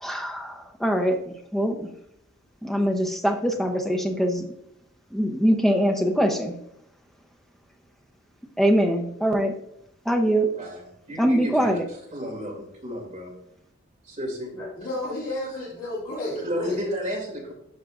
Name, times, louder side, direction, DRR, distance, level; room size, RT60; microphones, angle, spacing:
voice 1, 0.0-1.9 2.6-4.5 5.1-6.5 8.6-9.5 10.1-10.5 11.2-11.8, equal, ahead, 4 dB, 0.6 m, -23 dB
voice 2, 11.1-11.8 12.1-13.3 14.0-14.5 16.4-17.5, equal, 35° right, -1 dB, 2.3 m, -32 dB
voice 3, 14.5-16.8, left 1 dB, 75° left, -9 dB, 2.8 m, -32 dB
11.0 x 6.0 x 2.4 m, 0.76 s
head